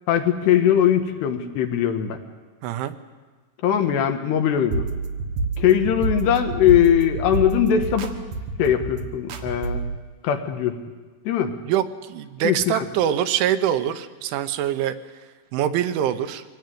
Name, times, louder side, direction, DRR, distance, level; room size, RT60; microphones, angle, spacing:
voice 1, 0.1-2.2 3.6-4.8 5.6-8.2 8.6-9.8 10.2-10.8 11.3-11.6 12.4-12.8, left 10 dB, 70° left, 6 dB, 3.0 m, -20 dB
voice 2, 2.6-2.9 11.7-14.9 15.5-16.4, right 10 dB, 80° right, 9 dB, 3.3 m, -24 dB
sound 1, 4.7-10.0, right 4 dB, 65° right, 2.3 m, -28 dB
24.0 x 17.0 x 9.2 m, 1.4 s
omnidirectional pair, 5.6 m